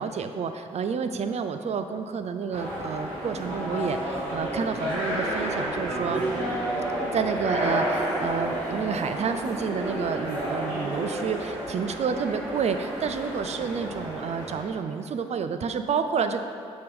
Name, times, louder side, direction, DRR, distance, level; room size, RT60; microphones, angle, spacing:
voice 1, 0.0-6.3 7.1-16.4, right 6 dB, 55° right, 8 dB, 0.4 m, -29 dB
sound 1, 2.5-14.7, right 1 dB, 85° right, 1.3 m, -30 dB
6.3 x 3.1 x 5.3 m, 2.6 s
supercardioid pair, 50°, 14 cm